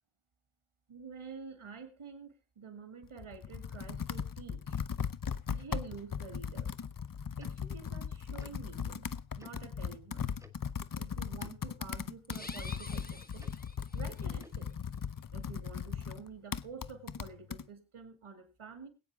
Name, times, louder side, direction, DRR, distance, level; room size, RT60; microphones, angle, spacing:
voice 1, 0.9-4.8 5.5-6.7 7.4-9.1 9.4-10.3 11.0-13.5 13.9-14.7 15.3-18.9, right 5 dB, 85° right, 7 dB, 2.3 m, -48 dB
Computer keyboard, 3.0-17.6, left 7 dB, 45° left, 0.7 m, -38 dB
Tick-tock, 7.4-7.5 8.4-8.5 9.4-9.5 10.4-10.5 11.4-11.5 12.4-12.5 13.4-13.5 14.4-14.6, right 1 dB, 5° right, 1.6 m, -56 dB
sound 1, 12.2-14.2, left 2 dB, 20° left, 1.4 m, -49 dB
21.5 x 8.9 x 3.6 m, 0.32 s
wide cardioid pair, 55°, 49 cm